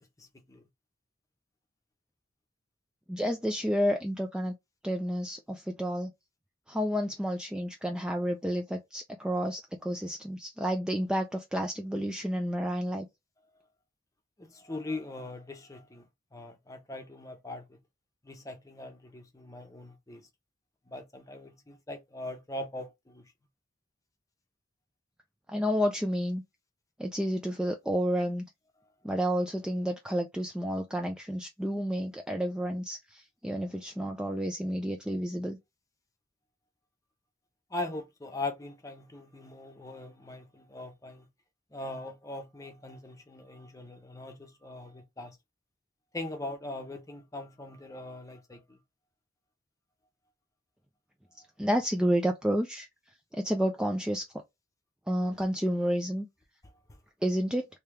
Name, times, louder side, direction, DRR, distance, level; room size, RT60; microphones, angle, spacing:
voice 1, 0.2-0.6 14.4-16.0 16.3-17.8 18.2-20.3 20.9-23.2 37.7-41.3 41.7-45.4 46.1-48.8 56.6-56.7, left 2 dB, 20° left, 0.7 m, -41 dB
voice 2, 3.1-4.5 4.8-6.1 6.7-13.1 25.5-26.4 27.0-28.4 29.0-35.6 51.6-52.9 53.3-54.3 55.1-56.3 57.2-57.7, equal, 5° right, 0.3 m, -30 dB
3.2 x 2.8 x 3.3 m
head